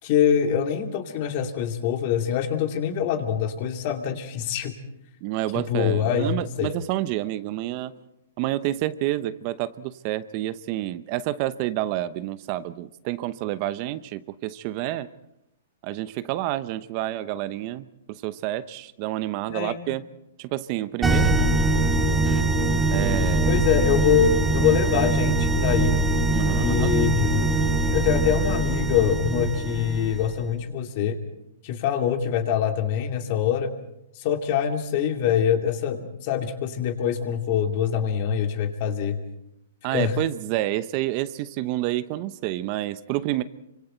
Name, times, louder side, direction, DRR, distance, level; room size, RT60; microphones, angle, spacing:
voice 1, 0.0-4.7 5.5-6.7 19.5-19.8 23.5-26.0 26.6-27.5 27.9-31.2 31.6-33.7 34.2-39.2 39.9-40.2, left 8 dB, 45° left, 5 dB, 2.7 m, -24 dB
voice 2, 5.2-7.9 8.4-15.1 15.8-20.0 20.4-21.5 22.9-23.6 26.3-27.1 27.5-27.7 39.8-43.4, right 15 dB, 40° right, 14 dB, 0.8 m, -29 dB
sound 1, 21.0-30.4, right 2 dB, 10° right, 2.6 m, -22 dB
26.5 x 25.5 x 4.5 m, 0.80 s
hypercardioid pair, 145°, 0 cm